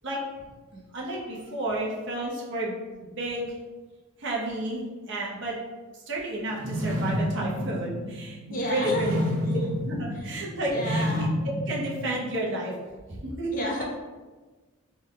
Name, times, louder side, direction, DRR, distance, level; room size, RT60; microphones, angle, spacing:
voice 1, 0.7-2.7 3.0-3.6 4.2-5.5 5.9-9.6 9.8-12.7 13.1-13.8, right 1 dB, 55° right, -4 dB, 0.8 m, -31 dB
sound 1, 6.5-12.6, equal, 85° right, 0.6 m, -30 dB
voice 2, 8.5-9.7 10.7-11.3 13.5-13.8, left 1 dB, 35° left, -1 dB, 0.5 m, -32 dB
3.3 x 2.2 x 3.7 m, 1.3 s
head